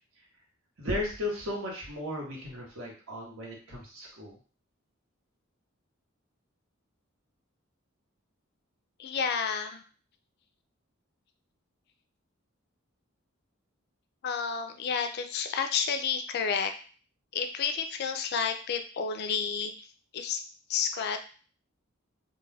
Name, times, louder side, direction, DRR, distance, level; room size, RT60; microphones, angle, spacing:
voice 1, 0.8-4.4, left 1 dB, 75° right, -2 dB, 0.9 m, -35 dB
voice 2, 9.0-9.8 14.2-16.7 17.3-19.7 20.1-20.4 20.7-21.2, left 6 dB, 50° left, 7 dB, 0.3 m, -30 dB
2.2 x 2.2 x 3.2 m, 0.39 s
head